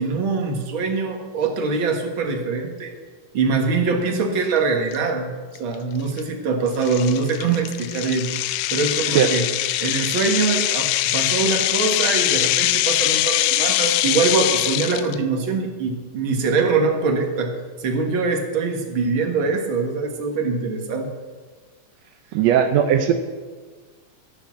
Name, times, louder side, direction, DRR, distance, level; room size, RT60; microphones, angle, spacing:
voice 1, 0.0-2.9 3.3-5.3 5.6-8.3 8.7-9.5 9.8-17.5 17.8-21.1, right 4 dB, 45° right, 3 dB, 1.9 m, -23 dB
sound 1, 4.9-5.0 5.6-5.7 6.2-6.3 6.8-15.1, left 15 dB, 90° left, 1.6 m, -22 dB
voice 2, 22.3-23.1, right 9 dB, 80° right, 6 dB, 1.5 m, -17 dB
12.5 x 8.7 x 7.4 m, 1.4 s
omnidirectional pair, 3.8 m